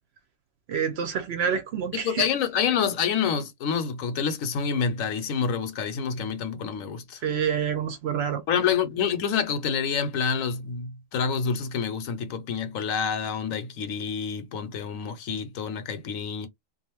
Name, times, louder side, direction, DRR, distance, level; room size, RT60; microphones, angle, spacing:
voice 1, 0.7-2.3 7.2-8.4, right 7 dB, 65° right, 0.7 m, -27 dB
voice 2, 1.9-7.2 8.5-16.5, left 6 dB, 80° left, 1.1 m, -27 dB
2.5 x 2.3 x 3.0 m
omnidirectional pair, 1.4 m